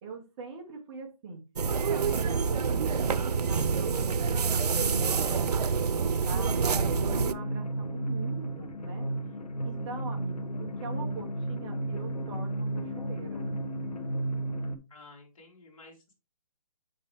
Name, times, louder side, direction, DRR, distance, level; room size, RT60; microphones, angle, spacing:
voice 1, 0.0-1.4 1.9-5.5 6.0-9.1 9.6-13.5, right 4 dB, 10° right, 0 dB, 0.7 m, -42 dB
sound 1, 1.6-7.3, right 5 dB, 85° right, 0.7 m, -27 dB
sound 2, 6.7-14.8, right 1 dB, 85° left, 1.3 m, -33 dB
voice 2, 14.9-16.1, left 3 dB, 55° left, -1 dB, 3.2 m, -53 dB
7.3 x 5.4 x 3.4 m, 0.27 s
hypercardioid pair, 175°, 20 cm